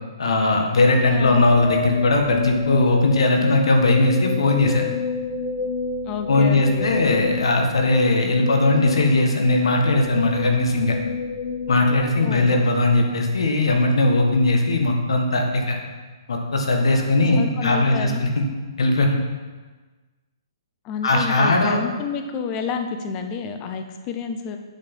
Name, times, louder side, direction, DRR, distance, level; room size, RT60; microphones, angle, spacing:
voice 1, 0.2-4.8 6.3-10.9 11.7-15.8 16.3-18.5 18.8-19.2 21.0-21.8, left 2 dB, 75° left, 2 dB, 1.6 m, -19 dB
sound 1, 1.0-13.1, left 4 dB, 35° left, 1.0 m, -28 dB
voice 2, 6.0-6.9 12.2-12.5 17.4-18.2 20.8-24.6, left 6 dB, 15° left, 6 dB, 0.5 m, -30 dB
8.1 x 6.0 x 5.5 m, 1.3 s
hypercardioid pair, 180°, 3 cm